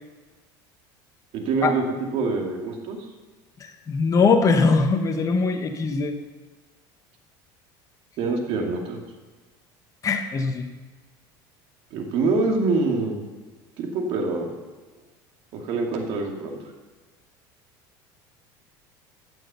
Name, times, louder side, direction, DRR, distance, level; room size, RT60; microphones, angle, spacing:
voice 1, 1.3-1.8 2.1-3.0 8.2-9.0 11.9-13.2 13.8-14.5 15.5-16.6, right 3 dB, 60° right, 2 dB, 2.3 m, -25 dB
voice 2, 3.6-6.2 10.0-10.7, left 4 dB, 30° left, 5 dB, 1.0 m, -21 dB
14.5 x 6.3 x 6.8 m, 1.3 s
supercardioid pair, 105°, 11 cm